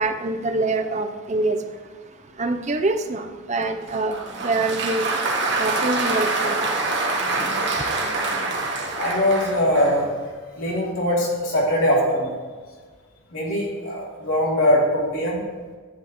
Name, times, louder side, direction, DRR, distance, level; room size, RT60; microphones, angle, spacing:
voice 1, 0.0-1.6 2.4-4.1 4.4-5.1 5.6-6.6, right 2 dB, 30° right, 6 dB, 0.6 m, -24 dB
Applause, 3.9-10.1, right 3 dB, 50° right, 1.4 m, -25 dB
voice 2, 9.0-10.1 10.6-12.4 13.3-15.4, left 1 dB, 75° left, -4 dB, 3.1 m, -21 dB
13.0 x 9.4 x 3.1 m, 1.5 s
head